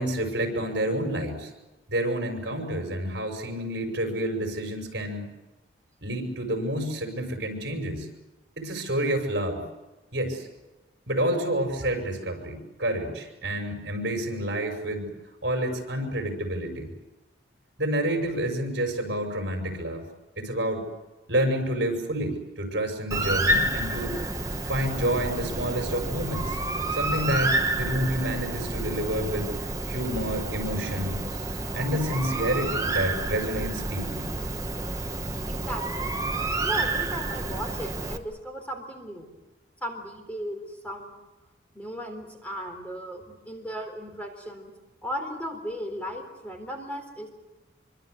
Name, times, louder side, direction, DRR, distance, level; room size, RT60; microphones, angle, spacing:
voice 1, 0.0-1.5 1.9-5.3 6.0-8.1 8.6-9.6 10.1-10.5 11.1-15.1 15.4-16.9 17.8-20.0 20.4-20.8 21.3-24.2 24.7-26.6 26.9-29.5 29.9-31.3 31.7-34.3, right 1 dB, 60° right, 4 dB, 6.2 m, -29 dB
Bird, 23.1-38.2, right 2 dB, 15° right, 1.3 m, -29 dB
voice 2, 35.5-36.1 36.6-39.3 39.8-41.2 41.7-44.7 45.0-47.3, equal, 10° left, 3 dB, 3.8 m, -36 dB
25.5 x 24.5 x 8.0 m, 1.1 s
head